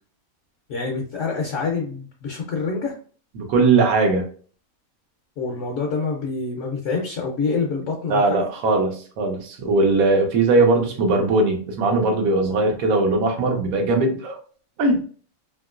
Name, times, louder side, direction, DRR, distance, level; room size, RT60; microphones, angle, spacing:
voice 1, 0.7-2.9 5.4-8.5, left 4 dB, 65° left, 0 dB, 0.9 m, -26 dB
voice 2, 3.4-4.3 8.1-14.4 14.8-15.0, right 3 dB, 80° right, 3 dB, 1.2 m, -19 dB
2.9 x 2.8 x 2.4 m, 0.43 s
omnidirectional pair, 1.5 m